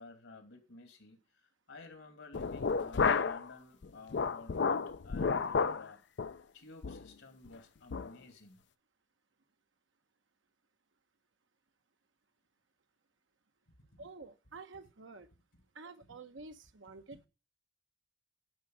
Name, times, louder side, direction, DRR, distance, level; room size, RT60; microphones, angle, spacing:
voice 1, 0.0-6.0 6.5-8.6 13.7-14.0 15.5-15.6 17.1-17.3, left 2 dB, 90° left, 2.8 m, -54 dB
sound 1, 2.3-3.5 3.8-5.8 6.2-6.4 6.8-7.1 7.5-7.6 7.9-8.1, left 5 dB, 65° left, 0.5 m, -31 dB
voice 2, 14.0-15.3 15.7-17.3, right 3 dB, 80° right, 1.1 m, -50 dB
11.0 x 4.8 x 7.8 m
head